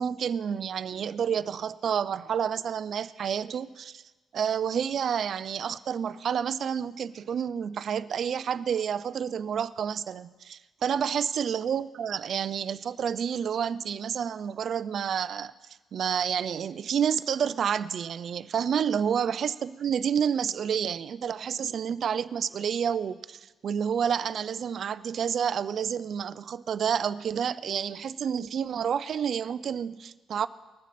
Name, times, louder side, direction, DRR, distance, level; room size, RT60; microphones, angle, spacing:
voice 1, 0.0-4.0 4.3-15.5 15.9-30.5, right 8 dB, 60° right, 15 dB, 0.5 m, -29 dB
20.5 x 7.2 x 4.3 m, 1.2 s
cardioid pair, 90°, 0 cm